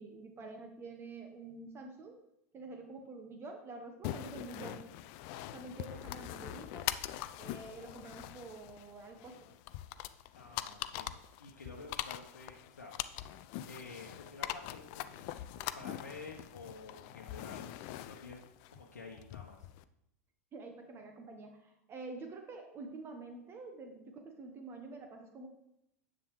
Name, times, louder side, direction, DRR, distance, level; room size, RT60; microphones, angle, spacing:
voice 1, 0.0-2.2 2.5-4.9 5.5-6.9 7.4-9.4 20.5-25.5, right 3 dB, 30° right, 4 dB, 1.2 m, -47 dB
sound 1, 4.0-19.8, left 14 dB, 45° left, 0.5 m, -43 dB
voice 2, 10.3-11.1 11.4-13.1 13.6-15.4 15.7-17.8 18.1-18.4 18.7-19.7, left 3 dB, 80° left, 0 dB, 1.1 m, -50 dB
9.9 x 7.6 x 3.2 m, 0.80 s
figure-of-eight pair, 85°, 9 cm